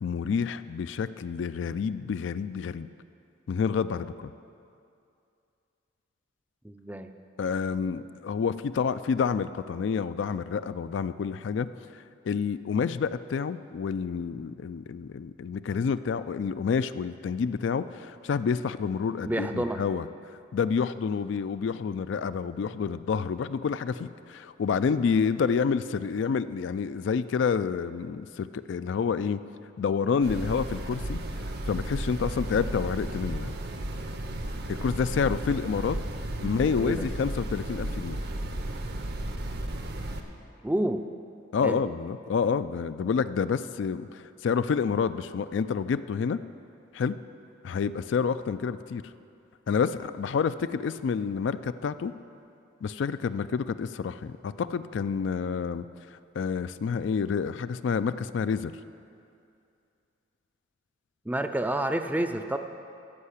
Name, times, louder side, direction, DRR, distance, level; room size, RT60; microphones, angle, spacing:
voice 1, 0.0-2.9 3.5-4.3 7.4-11.7 12.3-20.1 20.5-29.4 29.8-31.2 31.7-33.5 34.7-36.0 36.4-38.2 41.5-46.4 46.9-47.2 47.6-49.0 49.7-52.1 52.8-55.9 56.1-58.7, left 6 dB, 65° left, 13 dB, 0.3 m, -28 dB
voice 2, 6.6-7.1 19.2-19.8 36.4-37.1 40.6-41.0 41.6-41.8 61.3-62.6, right 1 dB, 10° right, 7 dB, 0.4 m, -29 dB
sound 1, 30.2-40.2, right 1 dB, 55° right, 0.8 m, -34 dB
14.0 x 5.6 x 8.2 m, 2.5 s
head